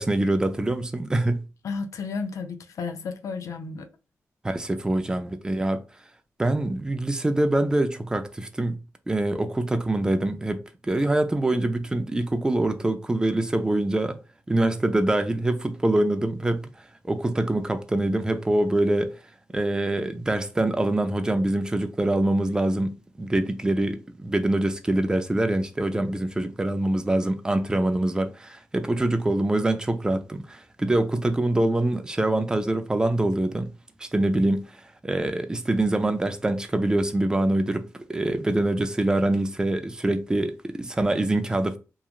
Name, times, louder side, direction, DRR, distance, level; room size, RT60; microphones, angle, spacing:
voice 1, 0.0-1.4 4.4-5.8 6.4-8.7 9.1-14.2 14.5-16.6 17.0-19.1 19.5-22.9 23.2-33.7 34.0-41.8, right 1 dB, 15° right, 0.4 m, -24 dB
voice 2, 1.6-3.9, left 4 dB, 75° left, 0.4 m, -32 dB
2.9 x 2.3 x 2.3 m
cardioid pair, 90°, 6 cm